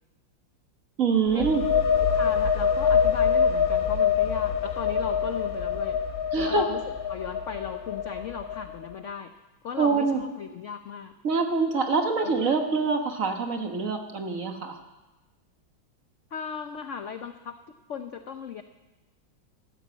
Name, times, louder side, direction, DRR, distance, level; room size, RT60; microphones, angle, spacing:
voice 1, 1.0-1.6 6.3-6.6 9.8-10.2 11.2-14.8, right 4 dB, 45° right, 5 dB, 1.5 m, -25 dB
sound 1, 1.3-8.8, left 7 dB, 50° left, 1.5 m, -25 dB
voice 2, 2.1-6.0 6.4-9.3 9.6-11.1 12.2-12.6 16.3-17.6 17.9-18.6, left 7 dB, 75° left, 8 dB, 0.6 m, -37 dB
13.5 x 13.0 x 8.2 m, 1.1 s
omnidirectional pair, 2.2 m